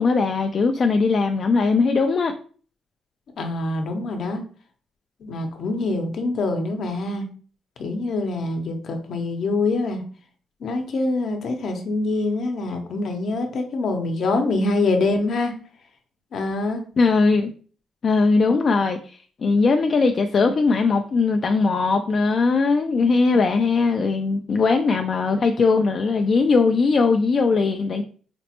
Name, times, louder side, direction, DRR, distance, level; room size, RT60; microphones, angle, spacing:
voice 1, 0.0-2.3 17.0-17.5 18.0-28.0, left 4 dB, 45° left, 5 dB, 0.3 m, -20 dB
voice 2, 3.4-4.4 5.2-7.3 7.8-10.0 10.6-15.5 16.3-16.8, left 2 dB, 60° left, 4 dB, 0.7 m, -25 dB
4.2 x 2.0 x 2.9 m, 0.42 s
cardioid pair, 90°, 0 cm